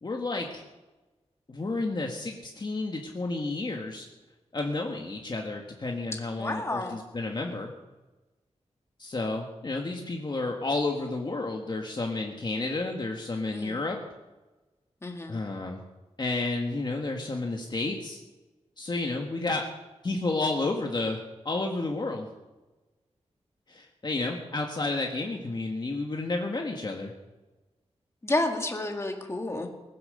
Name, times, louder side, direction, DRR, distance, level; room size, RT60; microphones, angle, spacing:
voice 1, 0.0-0.6 1.5-4.0 4.5-7.7 9.0-14.0 15.3-15.8 16.2-18.2 18.8-19.6 20.0-22.3 23.7-27.1, left 2 dB, 40° left, 1 dB, 1.6 m, -31 dB
voice 2, 6.4-7.0 13.5-13.8 15.0-15.4 28.2-29.7, left 2 dB, 25° left, 3 dB, 2.0 m, -30 dB
19.5 x 10.5 x 6.8 m, 1.1 s
wide cardioid pair, 130°, 12 cm